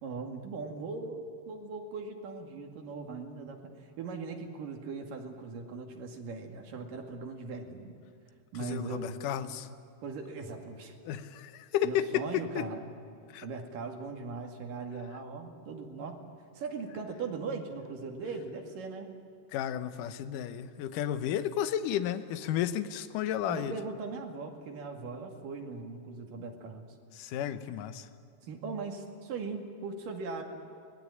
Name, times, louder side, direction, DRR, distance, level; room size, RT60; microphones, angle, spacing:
voice 1, 0.0-3.6 4.0-8.0 8.5-9.2 10.0-11.0 11.8-12.8 13.4-16.2 16.5-19.1 23.5-26.9 28.4-30.4, right 4 dB, 55° right, 3 dB, 3.7 m, -39 dB
voice 2, 8.6-9.7 11.0-12.7 13.3-13.5 19.5-23.8 27.1-28.1, left 10 dB, 70° left, 11 dB, 2.1 m, -32 dB
25.0 x 19.0 x 9.9 m, 2.4 s
omnidirectional pair, 4.8 m